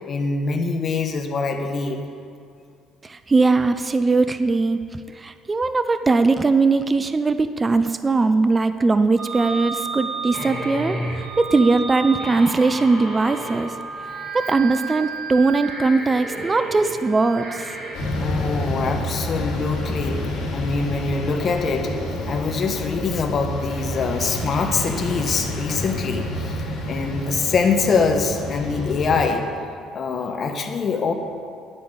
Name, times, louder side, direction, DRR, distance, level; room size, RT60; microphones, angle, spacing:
voice 1, 0.1-2.0 18.2-21.9 22.3-29.5 29.9-31.1, left 4 dB, 40° left, 5 dB, 1.2 m, -24 dB
voice 2, 3.0-4.8 5.2-11.0 11.4-13.7 14.3-17.8, right 3 dB, 20° right, 10 dB, 0.4 m, -20 dB
sound 1, 9.2-17.9, right 3 dB, 40° right, 3.0 m, -31 dB
sound 2, 17.9-29.2, left 1 dB, 55° left, 3.4 m, -29 dB
10.0 x 8.6 x 7.1 m, 2.3 s
cardioid pair, 125°, 0 cm